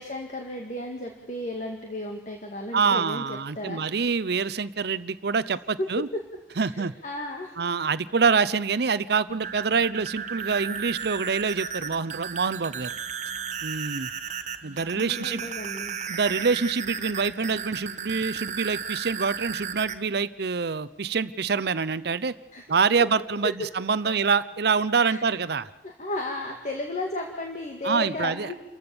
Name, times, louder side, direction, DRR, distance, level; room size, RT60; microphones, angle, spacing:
voice 1, 0.0-3.9 5.5-6.2 6.5-7.6 15.0-16.0 22.5-22.6 24.0-24.1 25.1-25.4 25.8-28.6, left 1 dB, 45° left, 2 dB, 2.0 m, -34 dB
voice 2, 2.7-6.1 6.6-6.9 7.6-12.9 13.6-14.1 14.6-15.5 16.1-22.3 22.7-25.7 27.8-28.5, right 5 dB, 65° right, 15 dB, 0.7 m, -26 dB
sound 1, 9.3-20.0, right 7 dB, 45° right, 1.2 m, -35 dB
29.5 x 15.0 x 7.0 m, 1.1 s
head